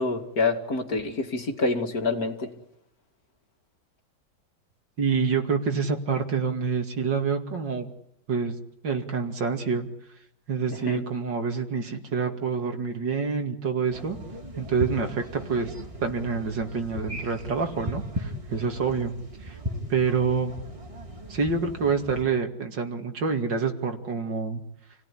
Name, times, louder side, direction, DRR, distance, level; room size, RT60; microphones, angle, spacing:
voice 1, 0.0-2.5 10.9-11.0, left 3 dB, 50° left, 3 dB, 2.8 m, -27 dB
voice 2, 5.0-7.9 8.3-8.6 8.8-9.9 10.5-14.2 14.6-15.7 16.0-19.1 19.4-19.5 19.9-20.5 21.3-24.6, right 5 dB, 70° right, 5 dB, 2.9 m, -27 dB
sound 1, 13.9-22.2, equal, 15° right, 2.3 m, -37 dB
29.0 x 18.0 x 9.9 m, 0.81 s
omnidirectional pair, 2.0 m